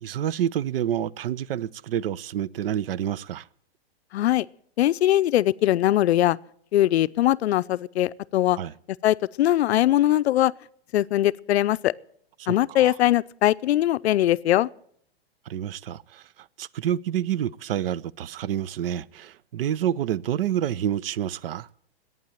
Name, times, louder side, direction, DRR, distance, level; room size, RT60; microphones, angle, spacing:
voice 1, 0.0-3.5 8.5-8.7 12.4-13.0 15.5-16.3 16.6-21.7, right 10 dB, 65° right, 0.5 m, -28 dB
voice 2, 4.1-4.5 4.8-6.4 6.7-8.6 9.0-10.5 10.9-11.9 12.5-14.7, left 13 dB, 85° left, 0.5 m, -21 dB
11.5 x 9.1 x 9.1 m
hypercardioid pair, 165°, 31 cm